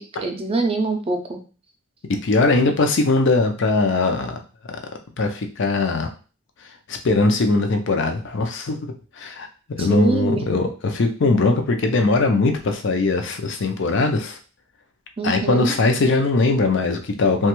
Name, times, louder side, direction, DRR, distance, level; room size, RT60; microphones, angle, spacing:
voice 1, 0.0-1.4 9.8-10.4 15.2-15.7, right 3 dB, 30° right, 5 dB, 0.5 m, -24 dB
voice 2, 2.2-4.4 5.2-6.1 6.9-8.8 9.2-9.5 9.8-14.4 15.2-17.5, left 3 dB, 60° left, 5 dB, 0.5 m, -20 dB
3.0 x 2.3 x 3.0 m, 0.37 s
head